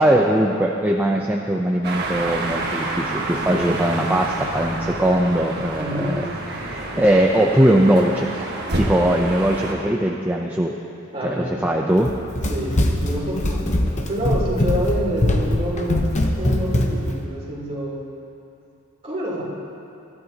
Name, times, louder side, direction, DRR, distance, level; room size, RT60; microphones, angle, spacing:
voice 1, 0.0-8.3 8.8-10.7 11.2-12.1, right 1 dB, 10° right, 0 dB, 0.6 m, -20 dB
sound 1, 1.8-9.7, right 2 dB, 50° right, 1.5 m, -28 dB
voice 2, 5.8-6.2 11.1-11.6 12.5-13.7 14.1-16.1 16.4-18.0 19.0-19.4, equal, 30° right, -7 dB, 3.6 m, -27 dB
Run, 12.0-17.2, left 1 dB, 35° left, 0.9 m, -22 dB
23.5 x 12.5 x 2.9 m, 2.7 s
head